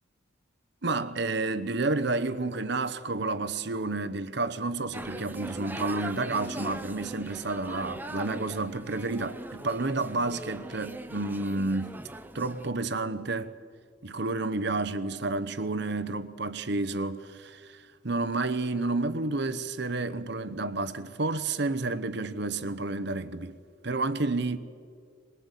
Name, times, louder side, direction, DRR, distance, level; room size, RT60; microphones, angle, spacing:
voice 1, 0.8-12.0 12.3-13.5 14.0-23.6 23.8-24.6, right 3 dB, 55° right, 1.0 m, -30 dB
sound 1, 4.9-12.7, right 1 dB, 10° right, 0.8 m, -40 dB
22.5 x 21.5 x 8.3 m
head